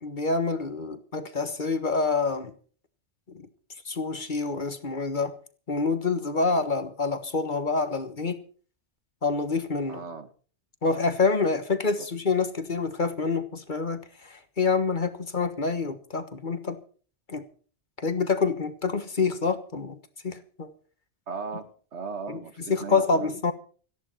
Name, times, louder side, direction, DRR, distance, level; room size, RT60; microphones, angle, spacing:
voice 1, 0.0-2.5 3.3-3.5 3.8-5.3 5.7-8.4 9.2-10.0 10.8-16.8 17.3-17.5 18.0-20.0 20.2-20.7 22.3-22.4 22.7-23.5, left 4 dB, 45° left, 1.5 m, -27 dB
voice 2, 9.9-10.3 12.0-12.1 21.3-22.5 22.8-23.3, right 5 dB, 80° right, 1.9 m, -37 dB
18.0 x 14.5 x 4.4 m
omnidirectional pair, 1.2 m